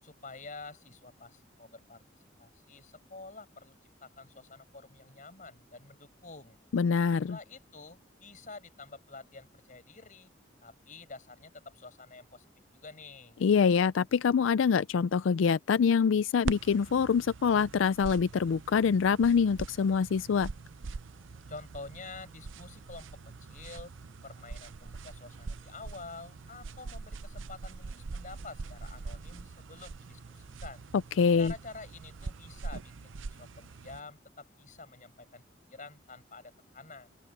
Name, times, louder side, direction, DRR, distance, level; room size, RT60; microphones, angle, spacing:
voice 1, 0.0-2.0 2.4-3.7 4.0-6.6 7.3-10.3 10.6-12.5 12.7-13.4 21.5-23.1 23.4-23.9 24.2-30.8 31.4-35.4 35.7-37.1, left 3 dB, 40° left, 5.8 m, -48 dB
voice 2, 6.7-7.4 13.4-20.5 31.2-31.5, left 6 dB, 85° left, 0.4 m, -25 dB
sound 1, 16.4-34.0, right 4 dB, 85° right, 0.6 m, -43 dB
open air
head